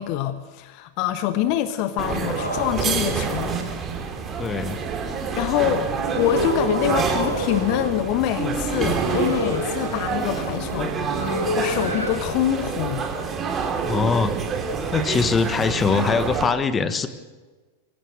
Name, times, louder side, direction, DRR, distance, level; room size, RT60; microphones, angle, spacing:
voice 1, 0.0-3.5 5.4-5.9 6.1-13.0, left 11 dB, 45° left, 11 dB, 1.2 m, -25 dB
sound 1, 2.0-16.5, right 5 dB, 25° right, 3.2 m, -27 dB
sound 2, 2.4-12.2, left 1 dB, 90° right, 5.1 m, -31 dB
voice 2, 4.4-4.8 13.8-14.3 14.9-17.1, left 5 dB, 20° left, 12 dB, 1.5 m, -22 dB
24.5 x 16.5 x 7.9 m, 1.3 s
figure-of-eight pair, 90°, 0 cm